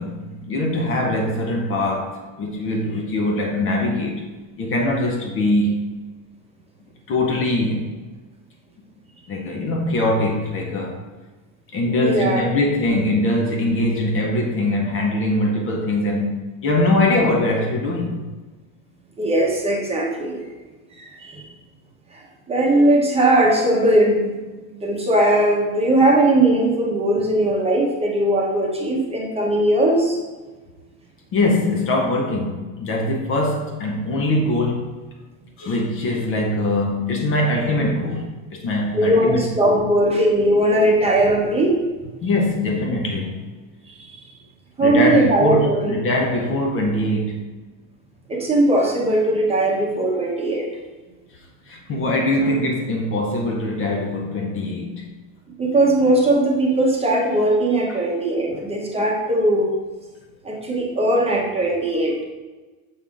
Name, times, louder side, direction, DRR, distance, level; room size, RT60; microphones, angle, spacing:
voice 1, 0.0-4.3 4.6-5.9 7.1-8.0 9.3-11.0 11.7-16.4 16.6-18.2 31.3-35.0 35.6-39.9 42.2-43.4 44.8-47.5 51.7-55.1, left 1 dB, 35° left, 0.7 m, -22 dB
voice 2, 11.9-12.4 19.2-20.4 20.9-21.4 22.1-22.2 22.5-24.4 24.7-30.2 38.9-41.8 42.2-42.3 43.9-44.3 44.8-45.9 48.3-50.7 55.6-59.7 60.4-62.2, right 1 dB, 15° right, 0.9 m, -19 dB
6.8 x 5.5 x 2.5 m
supercardioid pair, 145°, 40 cm